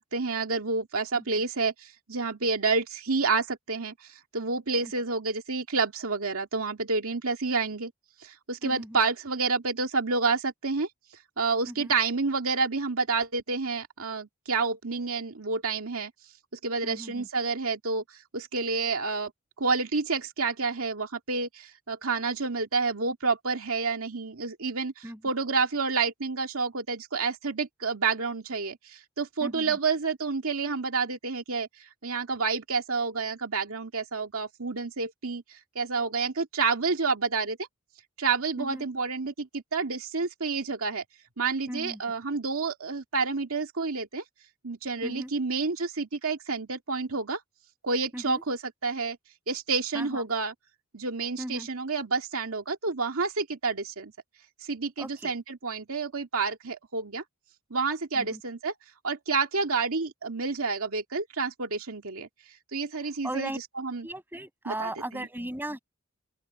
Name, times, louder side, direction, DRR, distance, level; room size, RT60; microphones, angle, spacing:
voice 1, 0.0-7.9 8.2-10.9 11.4-16.1 16.6-19.3 19.6-37.6 38.2-41.0 41.4-44.2 44.6-47.4 47.8-49.2 49.5-50.5 50.9-54.1 54.6-57.2 57.7-58.7 59.0-62.3 62.7-63.5 63.8-64.1 64.7-65.2, right 4 dB, 75° right, 2.2 m, -29 dB
voice 2, 8.6-9.0 11.7-12.0 16.8-17.3 25.0-25.2 29.4-29.8 38.6-38.9 41.7-42.2 45.0-45.3 48.1-48.4 49.9-50.2 51.4-51.7 55.0-55.4 58.1-58.4 63.2-63.6 64.0-65.8, right 1 dB, 10° right, 6.8 m, -37 dB
open air
head